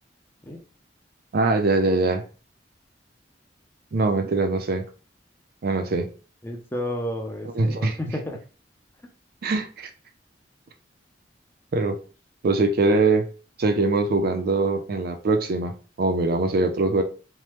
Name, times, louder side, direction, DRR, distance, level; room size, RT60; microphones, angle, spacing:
voice 1, 1.3-2.2 3.9-4.8 5.6-6.1 7.6-7.9 9.4-9.9 11.7-12.0 12.4-13.3 13.6-17.0, right 3 dB, 55° right, 6 dB, 0.4 m, -22 dB
voice 2, 6.4-8.4, left 1 dB, 10° left, 3 dB, 0.5 m, -31 dB
3.3 x 2.0 x 2.9 m, 0.36 s
head